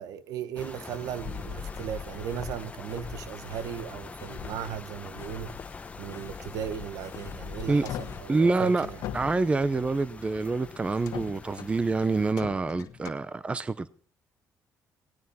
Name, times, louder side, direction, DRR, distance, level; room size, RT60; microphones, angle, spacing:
voice 1, 0.0-5.6 6.0-9.0, right 9 dB, 90° right, 1.2 m, -37 dB
sound 1, 0.6-12.3, left 4 dB, 20° left, 1.0 m, -45 dB
sound 2, 1.2-8.2, left 7 dB, 45° left, 1.3 m, -43 dB
sound 3, 7.2-8.3 8.8-10.1 10.8-11.8 12.4-13.1, left 10 dB, 85° left, 1.2 m, -40 dB
voice 2, 8.3-8.9 9.1-13.9, right 3 dB, 20° right, 0.7 m, -26 dB
18.5 x 17.0 x 4.2 m
cardioid pair, 120°, 6 cm